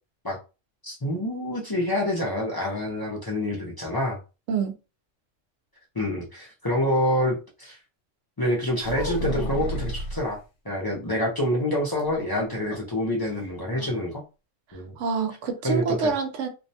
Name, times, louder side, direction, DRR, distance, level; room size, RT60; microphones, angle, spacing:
voice 1, 0.8-4.2 6.0-7.8 8.4-10.4 10.6-14.2 14.7-14.9 15.6-16.1, left 1 dB, 35° left, 0.4 m, -27 dB
sound 1, 8.8-10.3 12.0-13.0 13.2-13.3 13.7-14.0, left 1 dB, 70° left, 0.9 m, -31 dB
voice 2, 15.0-16.5, right 5 dB, 75° right, 0.9 m, -26 dB
2.6 x 2.1 x 2.7 m
omnidirectional pair, 1.3 m